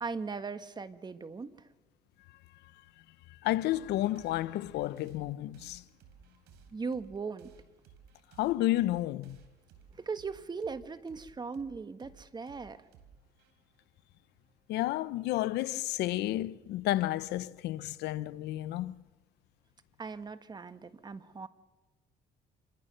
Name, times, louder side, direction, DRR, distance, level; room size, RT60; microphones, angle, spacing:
voice 1, 0.0-1.7 6.7-7.5 9.9-12.8 20.0-21.5, right 4 dB, 25° right, 1.3 m, -39 dB
voice 2, 3.4-5.8 8.4-9.4 14.7-18.9, left 15 dB, 80° left, 0.8 m, -31 dB
sound 1, 3.7-14.8, right 7 dB, 85° right, 3.7 m, -59 dB
27.0 x 22.5 x 6.7 m
cardioid pair, 110°, 17 cm